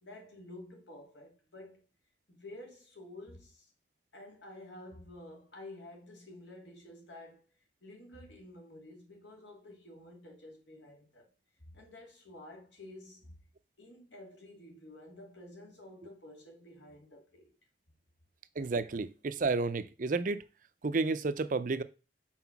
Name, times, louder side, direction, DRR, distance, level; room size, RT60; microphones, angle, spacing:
voice 1, 0.0-1.8 2.3-3.7 4.1-7.4 7.8-11.3 11.6-13.4 13.8-17.5, left 1 dB, 85° left, 2.4 m, -51 dB
voice 2, 18.6-20.4 20.8-21.8, right 3 dB, 45° right, 0.5 m, -31 dB
5.8 x 4.4 x 5.9 m
head